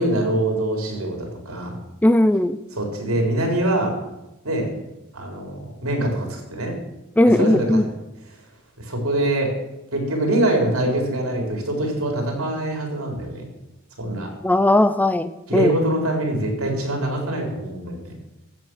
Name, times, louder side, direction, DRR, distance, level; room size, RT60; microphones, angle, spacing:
voice 1, 0.0-1.7 2.7-3.9 4.4-4.7 5.1-6.8 7.2-7.9 8.8-9.5 9.9-13.4 14.0-14.3 15.5-18.1, right 1 dB, 85° right, 2 dB, 4.0 m, -24 dB
voice 2, 2.0-2.6 7.2-7.8 14.4-15.7, left 1 dB, 10° left, 13 dB, 0.4 m, -17 dB
14.0 x 8.0 x 6.3 m, 0.96 s
head